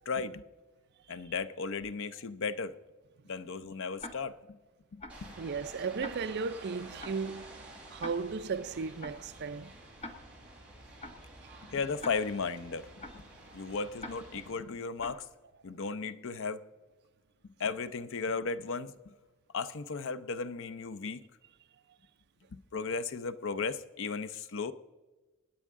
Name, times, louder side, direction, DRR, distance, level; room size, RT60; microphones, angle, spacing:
voice 1, 0.1-0.4 1.1-2.8 3.2-4.6 4.9-5.3 11.6-13.2 13.5-15.3 15.6-16.7 17.6-19.1 19.5-21.2 22.5-24.7, left 4 dB, 60° left, 0.6 m, -35 dB
Tick-tock, 4.0-4.1 5.0-5.1 6.0-6.1 7.0-7.1 8.0-8.1 9.0-9.1 10.0-10.1 11.0-11.1 12.0-12.1 13.0-13.1 14.0-14.1 15.0-15.1, left 2 dB, 30° left, 1.3 m, -42 dB
sound 1, 5.1-14.5, right 1 dB, 5° right, 4.2 m, -51 dB
voice 2, 5.4-7.5 7.9-9.7 13.5-13.6, right 5 dB, 50° right, 0.5 m, -35 dB
26.0 x 9.4 x 3.7 m
head